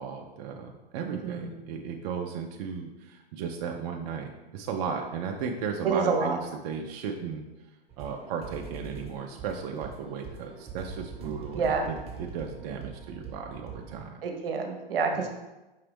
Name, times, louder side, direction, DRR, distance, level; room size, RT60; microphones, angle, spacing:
voice 1, 0.0-6.4 6.6-7.5 8.0-14.2 15.1-15.3, right 6 dB, 45° right, 2 dB, 0.5 m, -35 dB
voice 2, 1.1-1.5 5.8-6.4 11.2-11.9 14.2-15.3, right 5 dB, 70° right, 4 dB, 0.8 m, -28 dB
sound 1, 7.9-14.0, right 4 dB, 20° right, 1.0 m, -43 dB
5.4 x 2.8 x 3.4 m, 1.1 s
hypercardioid pair, 110°, 29 cm